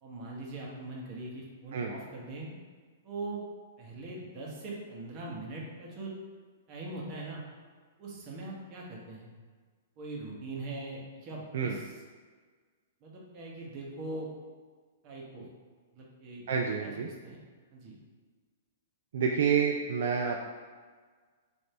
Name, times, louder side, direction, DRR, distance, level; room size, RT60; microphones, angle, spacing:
voice 1, 0.0-2.5 3.0-3.4 3.8-6.1 6.7-7.4 8.0-9.3 10.0-11.8 13.0-14.3 15.0-15.5 16.0-16.4 16.8-16.9 17.2-17.4 17.7-17.9, right 2 dB, 40° right, -3 dB, 1.1 m, -41 dB
voice 2, 16.5-17.1 19.1-20.4, right 6 dB, 65° right, 1 dB, 0.3 m, -28 dB
3.2 x 2.7 x 4.2 m, 1.5 s
hypercardioid pair, 135°, 0 cm